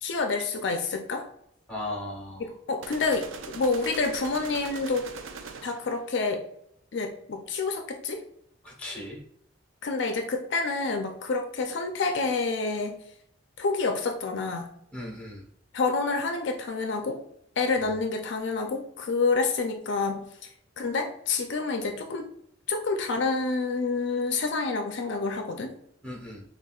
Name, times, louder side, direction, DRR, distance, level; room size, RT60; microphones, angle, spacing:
voice 1, 0.0-1.3 2.4-5.1 5.6-6.4 6.9-8.2 9.8-13.0 13.6-14.7 15.7-17.2 17.6-20.3 20.8-22.3 22.7-25.7, left 4 dB, 60° left, 5 dB, 0.4 m, -28 dB
voice 2, 1.7-2.5 8.6-9.2 14.9-15.4 26.0-26.4, left 1 dB, 5° left, -2 dB, 1.1 m, -37 dB
sound 1, 2.8-6.0, right 4 dB, 75° right, 0.5 m, -41 dB
6.4 x 2.4 x 2.3 m, 0.72 s
head